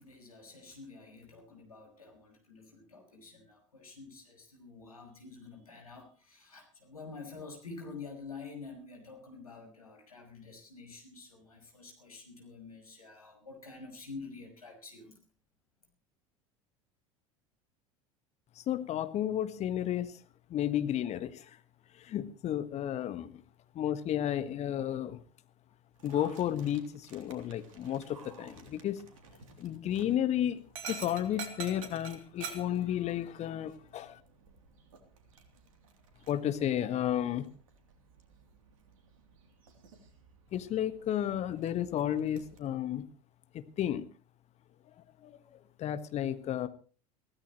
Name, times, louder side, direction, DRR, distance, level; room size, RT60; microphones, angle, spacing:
voice 1, 0.0-15.1, left 4 dB, 80° left, 2 dB, 6.1 m, -48 dB
voice 2, 18.7-20.1 20.5-21.3 22.1-23.3 23.7-25.2 26.0-29.0 29.6-30.6 30.9-34.1 36.3-37.5 40.5-43.0 43.8-44.0 45.8-46.7, left 11 dB, 35° left, 11 dB, 1.6 m, -32 dB
Dog, 26.0-42.6, right 6 dB, 65° right, 3.3 m, -50 dB
23.0 x 16.5 x 3.1 m, 0.37 s
figure-of-eight pair, 75°, 18 cm